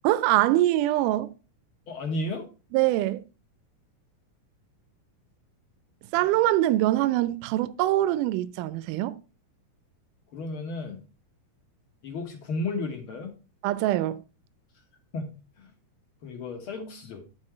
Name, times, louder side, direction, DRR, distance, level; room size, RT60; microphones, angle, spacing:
voice 1, 0.0-1.3 2.7-3.2 6.1-9.2 13.6-14.2, right 15 dB, 85° right, 2.1 m, -23 dB
voice 2, 1.9-2.5 10.3-11.0 12.0-13.4 15.1-15.7 16.2-17.2, left 2 dB, 50° left, 1.9 m, -33 dB
10.5 x 4.5 x 4.4 m
omnidirectional pair, 3.6 m